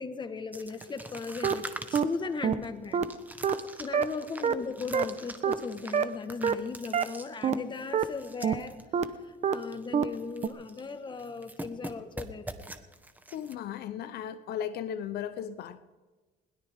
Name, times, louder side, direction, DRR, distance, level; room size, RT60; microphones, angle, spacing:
voice 1, 0.0-3.1 3.5-8.8 9.0-12.5, left 4 dB, 25° left, 9 dB, 1.4 m, -38 dB
sound 1, 0.5-8.8 9.1-9.2 9.5-9.9 10.1-10.9 11.2-13.5, right 1 dB, 10° right, 1.2 m, -44 dB
sound 2, 1.4-1.5 1.9-2.0 2.4-2.5 2.9-3.0 3.4-3.5 3.9-4.0 4.4-4.5 4.9-5.0 5.4-5.5 5.9-6.0 6.4-6.5 6.9-7.0 7.4-7.5 7.9-8.0 8.4-8.5 8.9-9.0 9.4-9.5 9.9-10.0 10.4-10.5, right 8 dB, 40° right, 0.9 m, -25 dB
voice 2, 13.3-15.8, left 9 dB, 70° left, 11 dB, 0.8 m, -36 dB
21.5 x 17.0 x 3.6 m, 1.3 s
cardioid pair, 110°, 17 cm